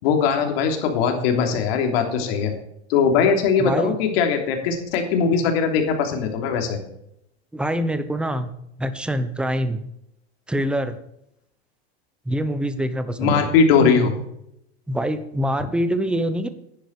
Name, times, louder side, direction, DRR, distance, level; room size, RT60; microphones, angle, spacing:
voice 1, 0.0-2.5 2.9-6.8 13.2-14.1, left 6 dB, 65° left, 4 dB, 3.3 m, -20 dB
voice 2, 3.6-4.0 7.5-8.5 8.8-9.8 10.5-11.0 12.3-13.5 14.9-16.5, equal, 5° right, 10 dB, 0.9 m, -25 dB
11.0 x 10.5 x 4.8 m, 0.77 s
supercardioid pair, 140°, 33 cm